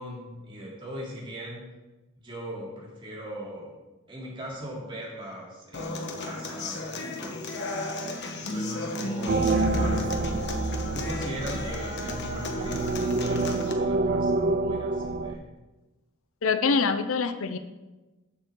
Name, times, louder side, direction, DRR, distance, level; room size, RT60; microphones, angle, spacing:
voice 1, 0.0-1.6 2.2-3.7 4.1-6.9 7.2-8.0 8.3-10.1 10.9-15.5, equal, 25° right, -5 dB, 3.3 m, -39 dB
Human voice / Acoustic guitar, 5.7-13.7, left 2 dB, 55° left, 1.3 m, -34 dB
sound 1, 9.3-15.3, right 3 dB, 45° right, 0.5 m, -27 dB
voice 2, 16.4-17.6, left 5 dB, 75° left, 10 dB, 0.7 m, -24 dB
13.5 x 7.3 x 3.8 m, 1.1 s
head